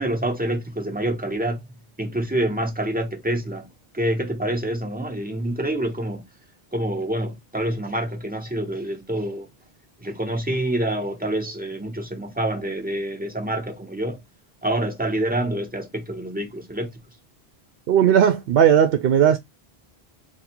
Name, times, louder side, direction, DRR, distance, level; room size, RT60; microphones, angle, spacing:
voice 1, 0.0-1.6 2.0-6.2 6.7-9.5 10.0-14.2 14.6-16.9, right 1 dB, 10° right, 0.8 m, -27 dB
voice 2, 17.9-19.4, right 9 dB, 70° right, 0.7 m, -16 dB
3.9 x 2.2 x 4.3 m
omnidirectional pair, 1.0 m